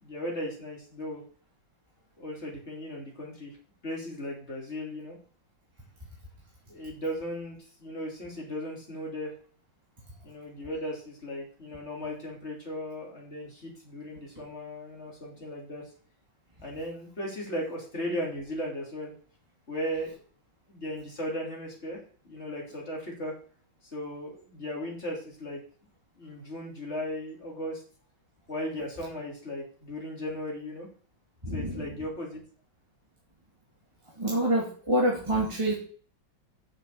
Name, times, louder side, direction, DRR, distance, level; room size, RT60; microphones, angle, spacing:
voice 1, 0.0-1.2 2.2-3.5 3.8-5.2 6.7-9.3 10.2-15.8 16.6-19.1 19.7-20.2 20.7-22.0 22.3-23.3 23.9-25.6 26.2-27.8 28.5-30.9 31.5-32.4, equal, 30° left, -2 dB, 3.7 m, -36 dB
voice 2, 31.4-31.9 34.2-35.7, right 1 dB, 15° right, -3 dB, 2.2 m, -26 dB
7.6 x 6.6 x 7.0 m, 0.44 s
omnidirectional pair, 2.2 m